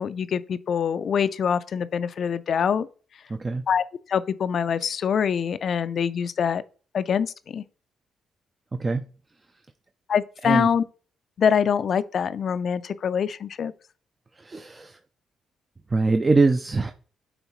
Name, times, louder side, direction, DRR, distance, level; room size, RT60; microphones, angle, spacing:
voice 1, 0.0-2.9 3.7-6.6 6.9-7.6 10.1-10.8 11.4-13.7, left 7 dB, 55° left, 0.4 m, -24 dB
voice 2, 8.7-9.1 10.4-10.7 14.4-14.9 15.9-16.9, right 3 dB, 25° right, 0.4 m, -22 dB
9.0 x 3.5 x 3.0 m
cardioid pair, 90°, 0 cm